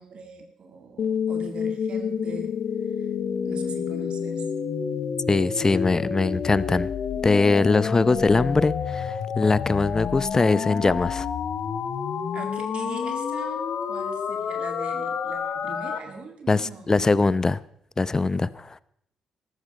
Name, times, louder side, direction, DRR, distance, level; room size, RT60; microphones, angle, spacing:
voice 1, 0.0-2.6 2.8-3.1 3.5-4.5 12.3-16.9, right 4 dB, 55° right, 5 dB, 2.0 m, -41 dB
sound 1, 1.0-16.0, left 7 dB, 60° left, 1.0 m, -29 dB
voice 2, 5.3-6.9 7.2-11.3 16.5-17.6 18.0-18.8, left 3 dB, 25° left, 19 dB, 0.7 m, -22 dB
14.5 x 13.0 x 5.3 m, 0.70 s
hypercardioid pair, 45°, 2 cm